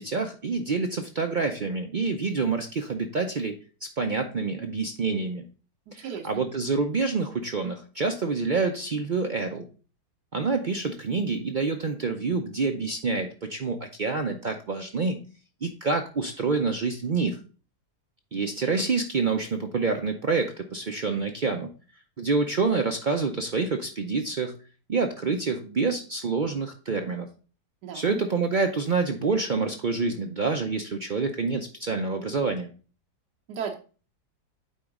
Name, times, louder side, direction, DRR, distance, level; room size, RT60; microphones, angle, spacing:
voice 1, 0.0-3.5 4.0-5.4 5.9-9.7 10.3-15.2 15.6-17.4 18.3-21.7 22.2-24.5 24.9-27.3 27.9-32.7, right 4 dB, 70° right, 4 dB, 0.4 m, -27 dB
voice 2, 6.0-6.4 27.8-28.2 33.5-33.7, right 7 dB, 85° right, 2 dB, 1.4 m, -35 dB
9.2 x 3.9 x 3.5 m, 0.37 s
omnidirectional pair, 1.7 m